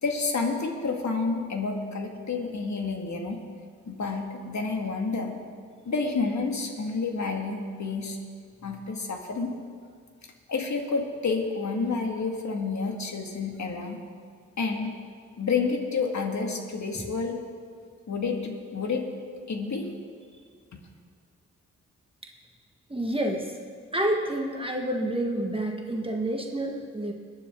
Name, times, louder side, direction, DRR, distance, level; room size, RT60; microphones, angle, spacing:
voice 1, 0.0-3.4 3.9-5.3 5.8-8.2 8.6-9.5 10.5-14.0 14.6-14.9 15.4-17.4 18.1-19.0 19.5-19.9, left 4 dB, 55° left, 2 dB, 2.2 m, -29 dB
voice 2, 22.9-23.5 23.9-27.1, right 1 dB, 15° right, 1 dB, 1.6 m, -28 dB
21.5 x 9.9 x 3.8 m, 2.1 s
cardioid pair, 50°, 33 cm